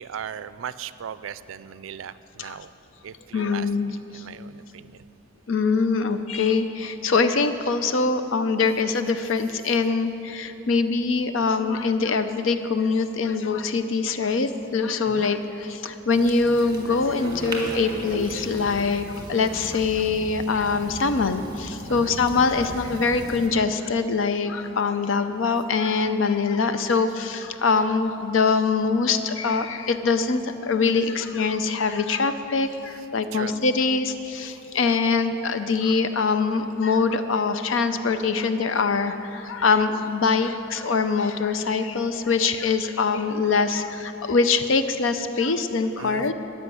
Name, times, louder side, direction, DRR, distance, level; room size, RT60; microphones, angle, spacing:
voice 1, 0.0-2.7 3.0-5.1 15.1-15.3 21.9-22.2 27.0-27.2 32.9-33.6 46.0-46.3, right 8 dB, 75° right, 15 dB, 0.4 m, -38 dB
voice 2, 3.3-4.2 5.5-46.3, left 4 dB, 65° left, 10 dB, 0.5 m, -23 dB
sound 1, 16.1-23.5, right 1 dB, 20° right, 1.7 m, -37 dB
14.0 x 5.7 x 9.7 m, 3.0 s
head